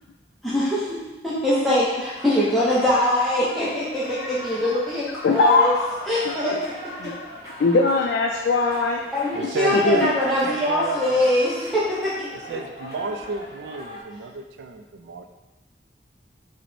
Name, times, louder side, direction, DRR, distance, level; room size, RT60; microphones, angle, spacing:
voice 1, 0.4-5.7 6.1-6.6 9.1-12.1, left 1 dB, ahead, -9 dB, 0.5 m, -23 dB
sound 1, 2.1-14.0, equal, 20° right, 1.0 m, -40 dB
voice 2, 5.2-5.9 6.4-6.6 7.0-7.1 7.6-9.0 9.8-10.0, left 3 dB, 85° left, 0 dB, 0.3 m, -20 dB
voice 3, 9.3-11.3 12.5-15.3, right 3 dB, 90° right, 6 dB, 0.3 m, -31 dB
4.9 x 2.0 x 3.1 m, 1.1 s
head